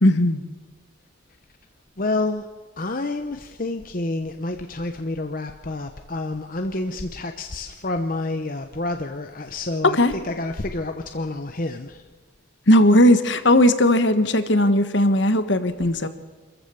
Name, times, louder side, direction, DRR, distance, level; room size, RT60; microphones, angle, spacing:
voice 1, 0.0-0.4 9.9-10.1 12.7-16.1, left 1 dB, 60° left, 10 dB, 1.4 m, -17 dB
voice 2, 2.0-2.5 2.8-10.0 10.2-12.0, left 2 dB, 40° left, 6 dB, 0.9 m, -28 dB
26.0 x 14.5 x 7.1 m, 1.3 s
head